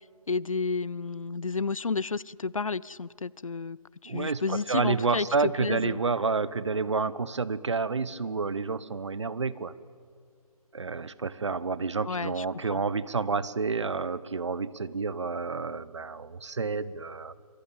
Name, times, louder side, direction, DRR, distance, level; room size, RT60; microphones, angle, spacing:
voice 1, 0.3-3.8 4.0-6.0 12.1-12.5 12.7-12.8, left 4 dB, 60° left, 24 dB, 0.6 m, -31 dB
voice 2, 4.0-9.7 10.7-17.3, right 4 dB, 50° right, 17 dB, 1.0 m, -29 dB
27.0 x 22.5 x 9.0 m, 2.2 s
figure-of-eight pair, 150°, 19 cm